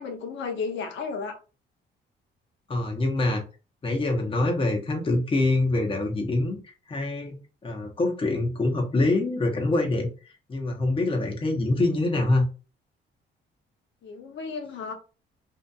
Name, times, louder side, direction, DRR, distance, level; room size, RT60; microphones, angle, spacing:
voice 1, 0.0-1.4 14.0-14.9, left 5 dB, 70° left, 0.6 m, -33 dB
voice 2, 2.7-3.4 3.8-6.6 6.9-7.4 7.6-10.1 10.5-12.5, left 2 dB, 25° left, 0.7 m, -25 dB
2.7 x 2.4 x 2.3 m
cardioid pair, 90°, 20 cm